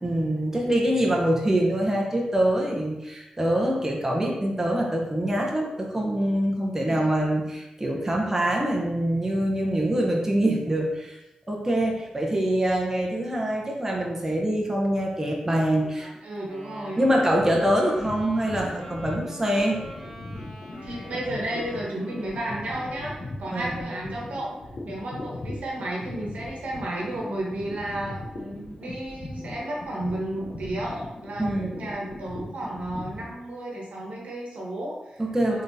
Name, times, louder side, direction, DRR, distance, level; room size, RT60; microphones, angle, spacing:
voice 1, 0.0-11.2 11.5-16.1 17.0-19.8 23.5-23.7 31.4-31.7 35.2-35.6, right 1 dB, 20° right, -2 dB, 0.8 m, -24 dB
voice 2, 15.9-17.0 20.8-24.5 24.8-35.2 35.5-35.6, right 1 dB, 75° right, -3 dB, 1.1 m, -33 dB
Wind instrument woodwind instrument, 16.4-22.9, equal, 10° left, 1.4 m, -43 dB
sound 1, 17.2-33.3, left 2 dB, 65° left, 0.8 m, -39 dB
3.7 x 3.6 x 2.7 m, 0.96 s
cardioid pair, 55°, 2 cm